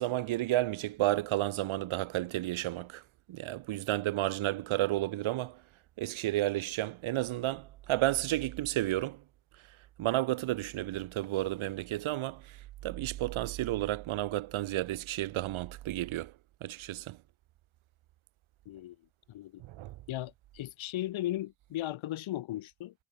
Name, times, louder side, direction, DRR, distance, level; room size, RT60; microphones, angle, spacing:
voice 1, 0.0-3.0 3.3-5.6 6.0-9.2 10.0-12.6 12.8-16.3 16.6-17.2 19.6-19.9, right 15 dB, 90° right, 5.3 m, -32 dB
voice 2, 18.7-19.0 19.3-19.6 20.1-22.9, left 14 dB, 80° left, 5.7 m, -36 dB
cardioid pair, 145°, 46 cm